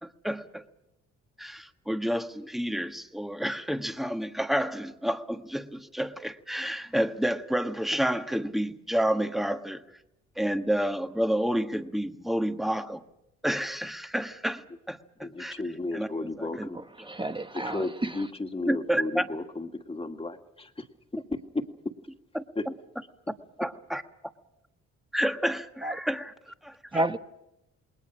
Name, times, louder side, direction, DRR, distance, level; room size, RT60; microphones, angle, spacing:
voice 1, 0.0-0.6 1.4-9.8 10.4-13.0 13.4-15.5 15.9-16.7 17.0-17.1 18.7-19.3 22.3-22.4 23.6-24.0 25.1-26.3 26.6-27.0, equal, ahead, 7 dB, 1.4 m, -30 dB
voice 2, 15.2-16.8 17.5-20.9 21.1-21.6 22.6-22.7, left 2 dB, 20° left, 6 dB, 2.1 m, -34 dB
voice 3, 16.7-18.3 25.8-26.0 26.9-27.2, right 2 dB, 15° right, 8 dB, 1.1 m, -31 dB
28.5 x 20.0 x 6.2 m, 0.86 s
cardioid pair, 90°, 30 cm